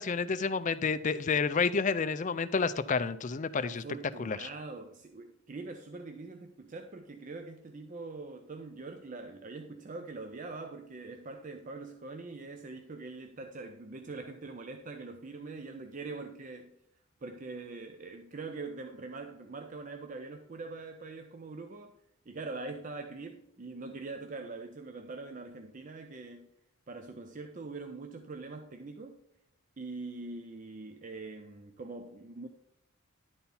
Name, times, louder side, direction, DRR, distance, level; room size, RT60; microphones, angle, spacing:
voice 1, 0.0-3.8 4.2-4.5, left 5 dB, 35° left, 13 dB, 0.4 m, -30 dB
voice 2, 3.6-16.8 17.2-22.0 22.3-26.5 26.9-29.2 29.8-32.5, right 3 dB, 35° right, 6 dB, 0.5 m, -43 dB
10.5 x 4.3 x 5.4 m, 0.78 s
head